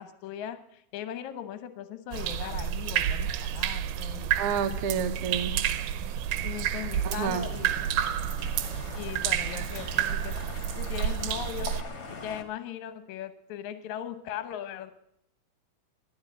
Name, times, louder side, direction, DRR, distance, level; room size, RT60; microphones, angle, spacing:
voice 1, 0.0-4.3 6.4-7.7 9.0-10.4 10.8-14.9, left 10 dB, 65° left, 10 dB, 2.0 m, -39 dB
sound 1, 2.1-11.8, right 10 dB, 90° right, 2.7 m, -30 dB
voice 2, 4.4-5.6 7.0-7.5, right 7 dB, 70° right, 5 dB, 1.3 m, -29 dB
sound 2, 6.2-12.4, left 4 dB, 40° left, 1.6 m, -43 dB
12.5 x 12.0 x 7.8 m, 0.75 s
omnidirectional pair, 4.3 m